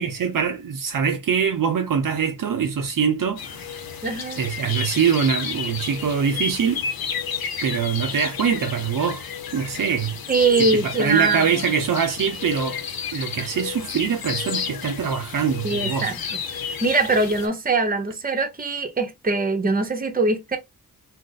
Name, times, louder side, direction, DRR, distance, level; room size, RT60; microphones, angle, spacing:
voice 1, 0.0-3.8 4.4-6.8 7.6-9.3 9.5-10.2 10.6-12.8 13.1-16.1, right 7 dB, 65° right, 0.6 m, -23 dB
sound 1, 3.4-17.5, left 7 dB, 80° left, 0.6 m, -31 dB
voice 2, 4.0-4.4 10.3-11.4 15.6-16.2 16.8-20.6, right 3 dB, 25° right, 0.7 m, -22 dB
2.5 x 2.1 x 3.9 m
cardioid pair, 55°, 36 cm